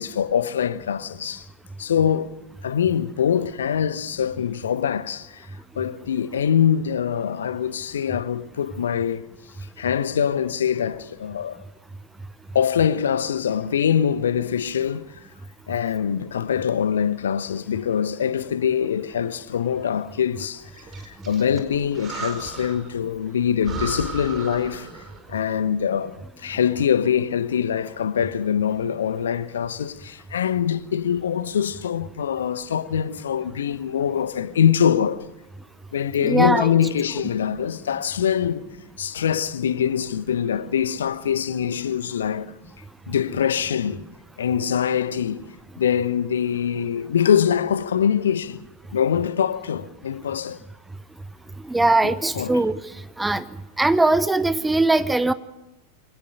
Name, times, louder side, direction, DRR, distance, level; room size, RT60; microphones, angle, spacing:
voice 1, 0.0-1.5 1.8-2.3 2.6-5.5 5.7-9.2 9.8-11.6 12.5-15.1 15.7-20.7 21.0-24.9 25.3-35.2 35.9-38.7 39.0-42.5 43.1-44.1 44.4-48.6 48.9-50.6 52.0-52.6, left 8 dB, 65° left, 1.0 m, -23 dB
Breathing, 20.7-22.9 23.3-23.4 23.6-25.3, right 4 dB, 25° right, 4.5 m, -35 dB
voice 2, 36.2-36.7 51.7-52.8 53.2-53.4 53.8-55.3, right 2 dB, 5° right, 1.0 m, -20 dB
23.5 x 18.5 x 6.3 m
figure-of-eight pair, 90°, 0 cm